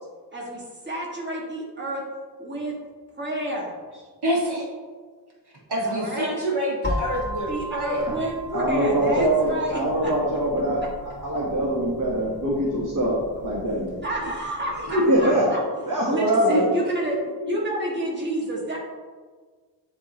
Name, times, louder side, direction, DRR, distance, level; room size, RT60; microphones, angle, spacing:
voice 1, 0.3-2.0 2.4-2.7 3.2-3.7 5.9-6.3 7.5-10.1 14.0-15.6 16.0-17.2 17.5-18.8, right 1 dB, 25° right, -4 dB, 1.8 m, -29 dB
voice 2, 4.2-4.7 5.7-8.1 13.9-14.0 16.5-16.6, equal, 65° right, -3 dB, 1.7 m, -26 dB
sound 1, 6.8-14.7, left 1 dB, 25° left, 0.8 m, -36 dB
voice 3, 8.5-13.9 14.9-15.5 15.8-16.6 17.4-17.6, right 1 dB, 50° right, -4 dB, 1.3 m, -23 dB
10.5 x 3.6 x 2.9 m, 1.5 s
wide cardioid pair, 90°, 42 cm